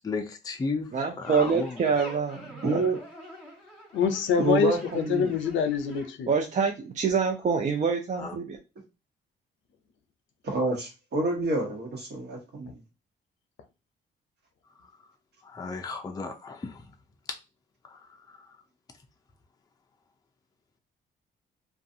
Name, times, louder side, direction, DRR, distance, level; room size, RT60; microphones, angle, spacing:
voice 1, 0.0-0.9 1.2-1.8 8.2-8.4 15.4-16.8 17.9-18.0, left 4 dB, 20° left, 4 dB, 0.4 m, -34 dB
voice 2, 0.9-2.8 6.3-8.6, right 5 dB, 40° right, 3 dB, 0.4 m, -26 dB
sound 1, 1.2-6.1, equal, 5° left, 1.3 m, -46 dB
voice 3, 2.6-3.0 4.4-5.3 10.4-12.8, right 2 dB, 60° right, 0 dB, 1.2 m, -28 dB
voice 4, 3.9-6.3, left 6 dB, 75° left, 8 dB, 0.6 m, -25 dB
2.4 x 2.3 x 2.6 m, 0.28 s
cardioid pair, 90°, 20 cm